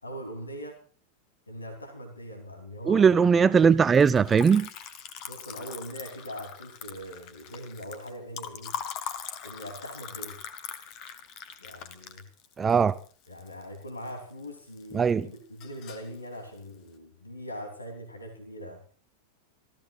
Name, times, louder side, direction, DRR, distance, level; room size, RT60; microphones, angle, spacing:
voice 1, 0.0-0.8 1.5-3.5 5.3-8.8 9.4-10.4 11.6-12.2 13.3-18.8, equal, 80° left, 3.5 m, -41 dB
voice 2, 2.9-4.7 12.6-13.0 14.9-15.3, right 6 dB, 20° right, 0.7 m, -20 dB
Liquid, 3.9-14.1 14.4-15.1 15.4-16.1, left 8 dB, 40° left, 1.9 m, -41 dB
26.5 x 15.5 x 2.5 m
figure-of-eight pair, 90°, 0 cm